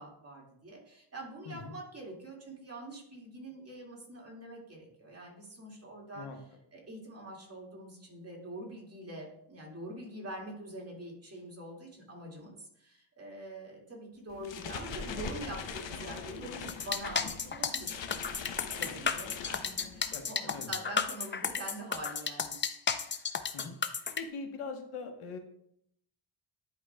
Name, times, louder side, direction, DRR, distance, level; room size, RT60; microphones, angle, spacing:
voice 1, 0.0-6.5 6.7-22.5, right 1 dB, 30° right, -2 dB, 2.1 m, -45 dB
voice 2, 1.5-1.8 6.1-6.4 18.8-19.0 20.1-20.7 23.5-23.8 24.2-25.4, left 4 dB, 90° left, 4 dB, 1.2 m, -42 dB
sound 1, 14.3-20.2, left 6 dB, 65° left, 0.8 m, -42 dB
sound 2, 16.7-24.2, left 6 dB, 25° left, 0.4 m, -33 dB
11.0 x 4.8 x 2.2 m, 0.72 s
cardioid pair, 110°, 49 cm